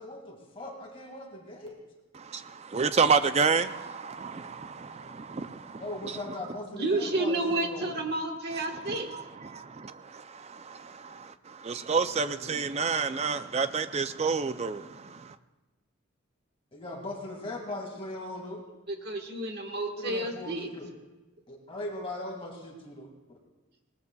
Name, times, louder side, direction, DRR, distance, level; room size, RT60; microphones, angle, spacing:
voice 1, 0.0-1.8 5.8-7.9 12.0-12.7 16.7-18.6 19.9-20.9 21.5-23.1, left 1 dB, 25° left, 2.2 m, -39 dB
voice 2, 2.2-5.8 9.1-9.2 9.5-15.3, right 5 dB, 30° right, 0.4 m, -29 dB
voice 3, 6.7-9.1 18.9-20.7, right 2 dB, 50° right, 1.5 m, -30 dB
20.5 x 19.0 x 2.3 m
head